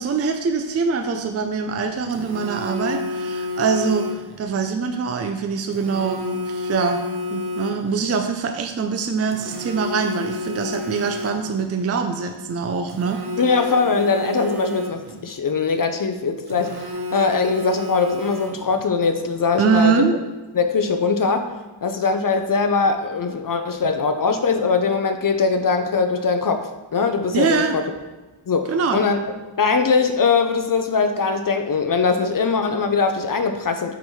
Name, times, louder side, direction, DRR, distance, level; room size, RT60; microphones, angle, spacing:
voice 1, 0.0-7.0 7.3-13.2 19.6-20.2 27.3-27.8 28.7-29.1, right 5 dB, 35° right, 5 dB, 0.4 m, -23 dB
Telephone, 2.1-4.4 5.7-8.1 9.3-11.7 12.9-15.3 16.5-18.9, left 2 dB, 55° right, 0.8 m, -30 dB
voice 2, 13.4-19.9 20.5-21.5 21.8-27.8 28.5-33.9, left 4 dB, 45° left, 7 dB, 0.6 m, -21 dB
5.1 x 4.2 x 4.5 m, 1.2 s
wide cardioid pair, 90°, 48 cm